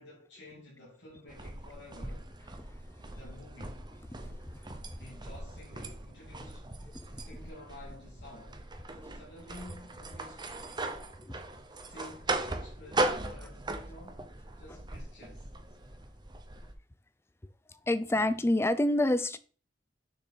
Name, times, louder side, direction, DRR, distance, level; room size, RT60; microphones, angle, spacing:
voice 1, 0.0-2.3 3.0-3.9 5.0-6.8 7.2-8.6 8.9-11.2 11.8-14.3 14.6-15.5, left 1 dB, 70° left, 2.3 m, -51 dB
sound 1, 1.3-16.7, right 2 dB, 25° right, 0.8 m, -39 dB
voice 2, 4.2-4.6 6.9-7.1 17.7-19.4, left 1 dB, 15° left, 0.5 m, -28 dB
6.8 x 6.1 x 4.1 m
head